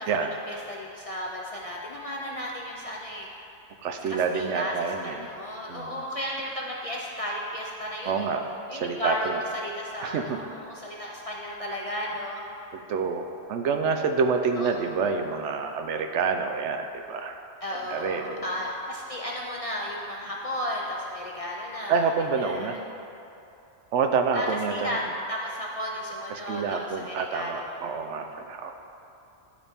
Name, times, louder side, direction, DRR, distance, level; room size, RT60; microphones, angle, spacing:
voice 1, 0.0-3.3 4.1-4.7 5.0-8.3 8.7-12.7 14.6-14.7 17.6-22.1 22.4-22.8 24.3-27.8, equal, 45° left, -3 dB, 0.4 m, -34 dB
voice 2, 3.8-5.3 5.7-6.1 8.0-9.4 10.0-10.5 12.7-17.4 17.9-18.4 21.9-22.8 23.9-25.0 26.3-28.7, right 5 dB, 75° right, 5 dB, 0.9 m, -28 dB
11.5 x 4.2 x 3.4 m, 2.8 s
omnidirectional pair, 1.2 m